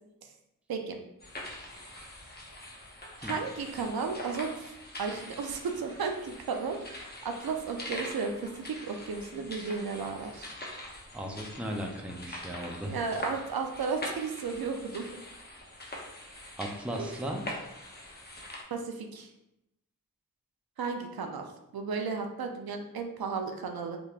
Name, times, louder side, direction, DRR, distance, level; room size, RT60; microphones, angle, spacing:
sound 1, 1.2-18.6, left 1 dB, 25° left, 0.7 m, -43 dB
voice 1, 3.2-10.6 12.9-15.1 17.0-17.1 18.7-19.3 20.8-21.5 21.7-24.0, right 5 dB, 80° right, 4 dB, 0.5 m, -34 dB
voice 2, 11.1-13.0 16.6-17.5, right 1 dB, 5° right, 2 dB, 0.4 m, -36 dB
3.4 x 2.9 x 2.4 m, 0.85 s
wide cardioid pair, 80°, 36 cm